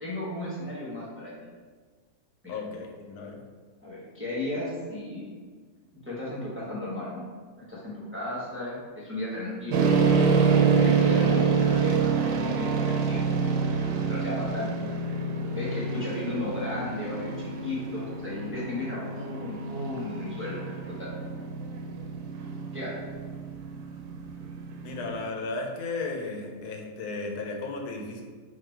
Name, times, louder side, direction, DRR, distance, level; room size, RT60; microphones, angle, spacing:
voice 1, 0.0-1.3 2.4-2.6 3.8-5.3 6.1-7.3 7.7-9.9 10.7-13.3 14.1-14.7 15.5-21.1 22.7-22.9, left 1 dB, 10° right, -8 dB, 0.8 m, -35 dB
voice 2, 2.5-3.4 11.1-11.2 24.8-28.2, left 3 dB, 85° left, 1 dB, 1.2 m, -35 dB
sound 1, 9.7-25.2, right 5 dB, 80° right, 1.1 m, -27 dB
4.1 x 2.7 x 4.4 m, 1.5 s
omnidirectional pair, 1.6 m